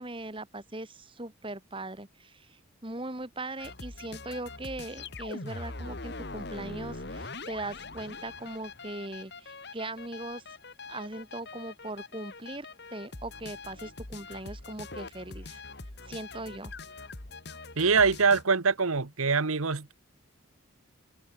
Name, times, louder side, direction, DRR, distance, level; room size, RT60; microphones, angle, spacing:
voice 1, 0.0-10.4 10.9-15.6 16.1-16.7, right 2 dB, 25° right, 1.7 m, -40 dB
sound 1, 3.6-18.4, left 3 dB, 50° left, 2.4 m, -43 dB
voice 2, 17.8-19.9, right 5 dB, 85° right, 1.3 m, -24 dB
head